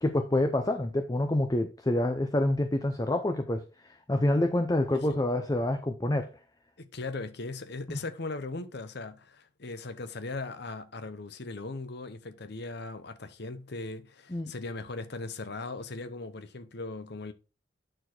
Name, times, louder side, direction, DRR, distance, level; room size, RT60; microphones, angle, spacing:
voice 1, 0.0-3.6 4.1-6.3 7.9-8.0 14.3-14.5, left 1 dB, 20° left, 0.5 m, -27 dB
voice 2, 6.8-17.3, left 3 dB, 55° left, 0.8 m, -39 dB
9.1 x 4.2 x 4.4 m
head